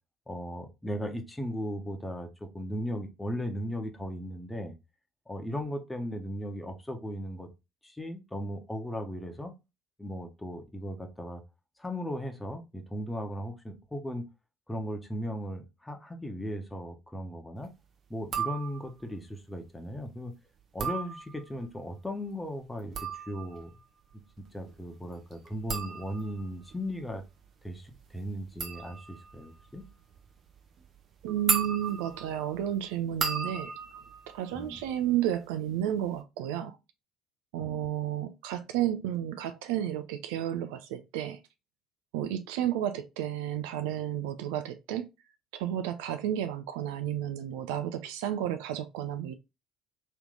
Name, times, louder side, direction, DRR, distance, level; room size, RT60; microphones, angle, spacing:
voice 1, 0.3-4.7 5.3-7.5 7.8-9.5 10.0-11.4 11.8-14.2 14.7-17.7 18.1-20.3 20.7-23.7 24.4-27.2 27.6-29.8 34.5-34.8 37.6-37.8, equal, 10° left, 1.1 m, -37 dB
sound 1, 18.2-19.1 20.6-21.7 22.7-35.4 35.7-36.2, right 6 dB, 50° right, 0.9 m, -37 dB
voice 2, 31.2-33.7 34.3-36.8 37.5-41.4 42.1-45.1 45.5-49.3, right 11 dB, 70° right, 0.4 m, -32 dB
3.2 x 3.1 x 3.8 m
hypercardioid pair, 55°, 0 cm